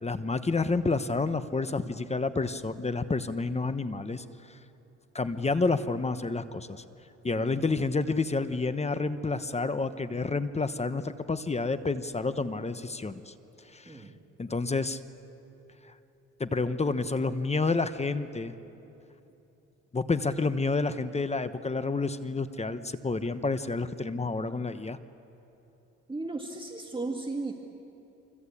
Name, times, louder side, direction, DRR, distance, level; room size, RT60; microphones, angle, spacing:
voice 1, 0.0-4.6 5.1-6.8 7.2-13.3 13.7-14.0 14.4-15.0 16.4-18.5 19.9-25.0, left 3 dB, 20° left, 11 dB, 1.0 m, -29 dB
voice 2, 26.1-27.5, right 3 dB, 15° right, 2 dB, 1.9 m, -35 dB
26.0 x 24.5 x 8.5 m, 3.0 s
cardioid pair, 90°, 30 cm